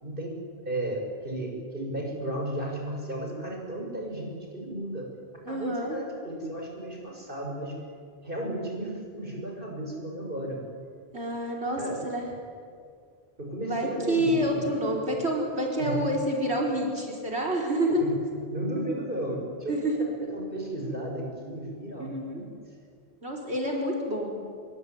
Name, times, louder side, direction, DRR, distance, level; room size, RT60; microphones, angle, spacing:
voice 1, 0.0-0.4 0.6-5.1 5.5-7.7 8.2-10.6 11.8-12.0 13.4-14.7 15.8-16.2 18.0-22.5, right 1 dB, 55° right, 0 dB, 6.4 m, -34 dB
voice 2, 5.5-6.0 11.1-12.3 13.6-18.1 19.7-20.1 22.0-22.4 23.2-24.4, equal, 90° right, -1 dB, 4.7 m, -28 dB
26.0 x 22.0 x 9.5 m, 2.2 s
omnidirectional pair, 1.1 m